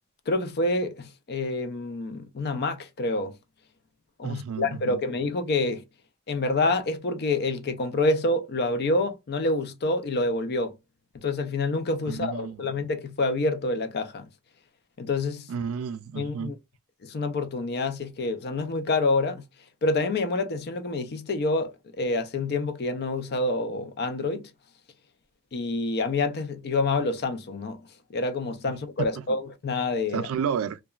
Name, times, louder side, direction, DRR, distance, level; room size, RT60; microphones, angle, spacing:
voice 1, 0.3-3.4 4.2-5.8 6.3-10.8 11.1-14.3 15.0-15.5 16.2-16.6 17.0-19.4 19.8-21.7 22.0-24.5 25.5-27.8 28.1-30.3, left 2 dB, 45° left, 0.5 m, -27 dB
voice 2, 4.2-5.0 12.1-12.7 15.5-16.5 28.7-28.8 29.3-29.4 30.1-30.8, right 7 dB, 65° right, 0.3 m, -31 dB
2.9 x 2.2 x 2.3 m
head